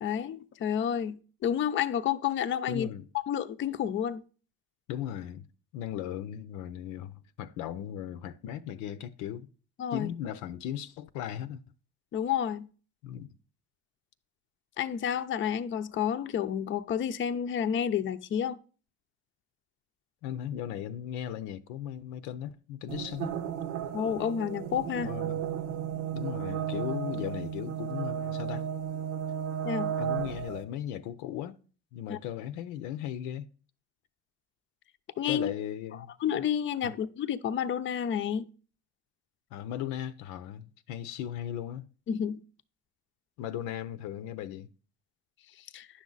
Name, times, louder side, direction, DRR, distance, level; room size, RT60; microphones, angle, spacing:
voice 1, 0.0-2.9 3.3-4.2 9.8-10.1 12.1-12.7 14.8-18.6 23.9-25.1 29.6-29.9 32.1-32.2 35.2-35.5 36.2-38.4 42.1-42.4 45.7-45.9, left 8 dB, 40° left, 0.5 m, -30 dB
voice 2, 2.7-3.1 4.9-5.5 5.7-9.5 9.9-11.6 13.0-13.3 20.2-23.4 25.0-25.4 26.1-28.7 30.0-31.6 31.9-33.5 35.3-36.1 36.8-36.9 39.5-41.9 43.4-44.7, left 11 dB, 85° left, 0.7 m, -37 dB
sound 1, 22.9-30.6, right 9 dB, 90° right, 1.0 m, -34 dB
10.0 x 6.2 x 3.9 m
cardioid pair, 100°, 29 cm